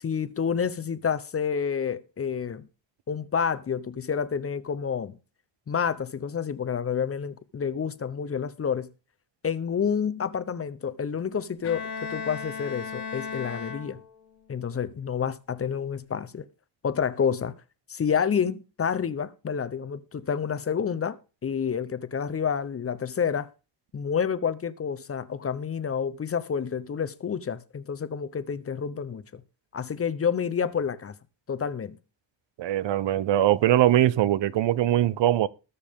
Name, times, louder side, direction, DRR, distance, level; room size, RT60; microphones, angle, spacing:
voice 1, 0.0-2.7 3.1-5.2 5.7-8.9 9.4-11.8 12.1-14.0 14.5-16.5 16.8-17.5 17.9-21.2 21.4-23.5 23.9-29.4 29.7-31.1 31.5-32.0, left 7 dB, 30° left, 0.8 m, -29 dB
Bowed string instrument, 11.6-14.4, left 5 dB, 60° left, 1.7 m, -36 dB
voice 2, 32.6-35.5, right 13 dB, 70° right, 0.8 m, -22 dB
20.5 x 7.0 x 3.7 m
cardioid pair, 160°, 45 cm